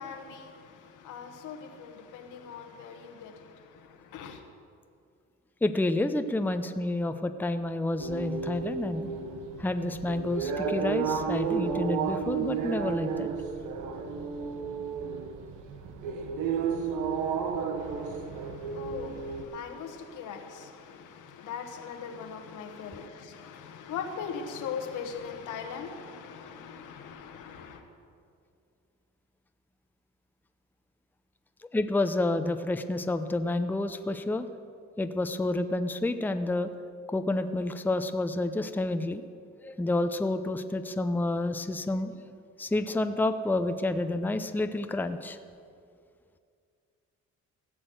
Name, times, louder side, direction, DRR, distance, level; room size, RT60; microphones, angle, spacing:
voice 1, 0.0-4.4 17.8-27.8, left 6 dB, 85° left, 1.4 m, -41 dB
voice 2, 5.6-9.1 9.6-13.3 31.7-34.5 35.0-36.7 37.1-39.2 39.6-42.1 42.6-45.4, left 2 dB, 5° left, 0.6 m, -29 dB
sound 1, 8.0-19.4, right 6 dB, 90° right, 1.1 m, -32 dB
15.5 x 6.3 x 7.8 m
cardioid pair, 90°, 30 cm